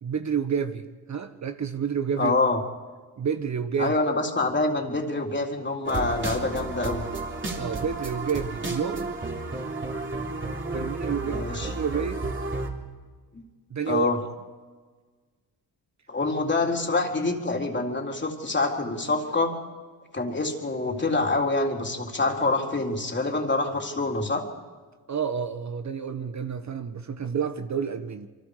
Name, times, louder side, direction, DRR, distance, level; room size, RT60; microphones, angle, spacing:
voice 1, 0.0-2.3 3.2-3.9 7.5-9.1 10.7-11.4 11.7-12.4 13.7-14.1 25.1-28.3, right 7 dB, 45° right, 8 dB, 1.3 m, -29 dB
voice 2, 2.2-2.6 3.8-7.0 11.2-11.7 13.3-13.4 13.9-14.2 16.1-19.5 20.1-24.4, left 3 dB, 25° left, 1 dB, 3.8 m, -26 dB
sound 1, 5.8-12.7, right 3 dB, 30° right, 3.6 m, -32 dB
28.0 x 23.5 x 5.1 m, 1.4 s
cardioid pair, 85°, 40 cm